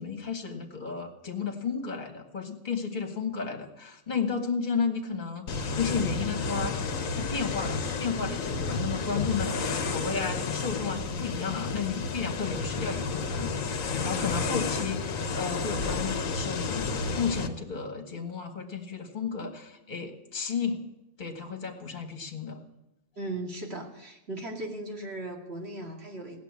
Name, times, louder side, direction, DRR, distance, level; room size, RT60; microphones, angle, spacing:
voice 1, 0.0-6.8 7.1-20.8 21.2-22.6, left 5 dB, 35° left, 4 dB, 1.6 m, -33 dB
sound 1, 5.5-17.5, left 4 dB, 75° left, 1.4 m, -31 dB
voice 2, 23.2-26.4, right 2 dB, 50° right, 1 dB, 2.6 m, -37 dB
16.5 x 7.4 x 9.5 m, 0.93 s
omnidirectional pair, 1.4 m